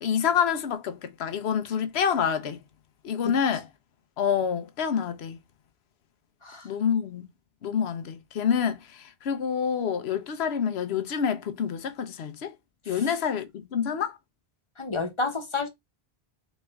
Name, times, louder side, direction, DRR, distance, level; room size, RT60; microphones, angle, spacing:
voice 1, 0.0-2.6 3.0-3.7 4.2-5.4 6.6-7.3 7.6-12.5 12.9-14.2, left 7 dB, 85° left, 1.0 m, -27 dB
voice 2, 14.8-15.7, left 3 dB, 30° left, 0.9 m, -30 dB
4.2 x 3.2 x 3.4 m
omnidirectional pair, 1.1 m